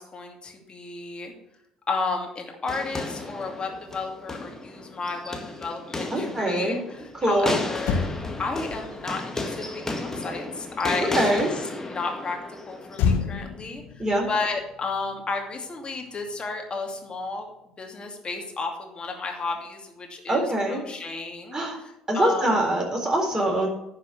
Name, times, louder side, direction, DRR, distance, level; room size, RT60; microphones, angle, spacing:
voice 1, 0.0-1.3 1.9-8.1 8.4-11.5 11.9-12.4 12.7-22.6, left 3 dB, 30° left, 2 dB, 2.6 m, -32 dB
sound 1, 2.7-13.0, left 2 dB, 15° left, 1.8 m, -34 dB
voice 2, 6.1-6.8 7.2-7.5 11.1-11.5 14.0-14.3 20.3-20.8 21.5-21.8 22.1-23.7, right 1 dB, 20° right, 0 dB, 3.9 m, -23 dB
Motor vehicle (road), 7.4-7.5 7.8-11.3 12.9-15.5 15.8-16.1, left 6 dB, 65° left, 1.1 m, -31 dB
10.5 x 4.8 x 8.1 m, 0.82 s
hypercardioid pair, 55°, 3 cm